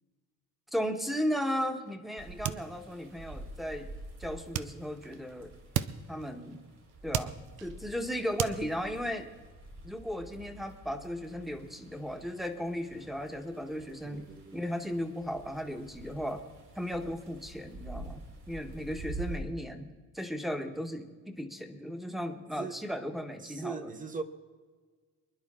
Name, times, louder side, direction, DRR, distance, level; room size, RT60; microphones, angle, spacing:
voice 1, 0.7-3.9 4.2-5.5 6.1-6.6 7.0-7.3 7.6-9.3 9.8-14.3 14.5-16.4 16.7-19.9 20.1-23.9, equal, ahead, 1.2 m, -35 dB
sound 1, 1.0-1.9 2.2-3.4 4.5-5.4 5.7-6.6 6.9-7.9 8.4-9.1, right 12 dB, 90° right, 0.7 m, -37 dB
sound 2, 2.2-19.4, right 2 dB, 55° right, 4.3 m, -48 dB
voice 2, 14.1-14.6 22.6-22.8 23.4-24.2, right 5 dB, 25° right, 1.1 m, -39 dB
24.5 x 11.0 x 3.8 m
cardioid pair, 130°, 31 cm